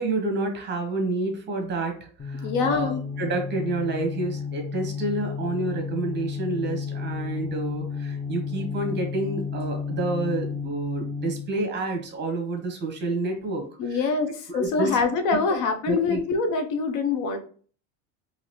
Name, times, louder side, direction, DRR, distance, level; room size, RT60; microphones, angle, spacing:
voice 1, 0.0-13.6 13.9-14.0 14.5-14.9 15.9-16.2, right 2 dB, 30° right, 3 dB, 1.1 m, -29 dB
sound 1, 2.2-11.6, left 6 dB, 10° left, 0.4 m, -32 dB
voice 2, 2.4-3.0 13.8-17.4, left 4 dB, 60° left, 6 dB, 0.7 m, -25 dB
3.9 x 2.8 x 3.0 m, 0.43 s
cardioid pair, 135°, 35 cm